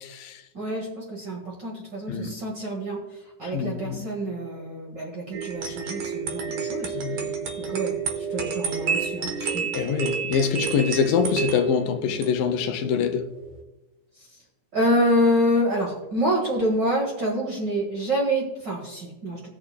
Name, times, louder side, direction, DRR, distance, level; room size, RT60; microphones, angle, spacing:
voice 1, 0.0-0.4 2.1-2.3 3.4-4.1 7.0-7.5 9.4-13.3, left 7 dB, 80° left, 2.3 m, -25 dB
voice 2, 0.5-3.0 3.4-6.9 7.6-9.7 14.7-19.5, equal, 45° right, 1.7 m, -27 dB
sound 1, 5.3-13.6, right 6 dB, 65° right, 1.7 m, -30 dB
18.0 x 6.8 x 2.2 m
omnidirectional pair, 3.9 m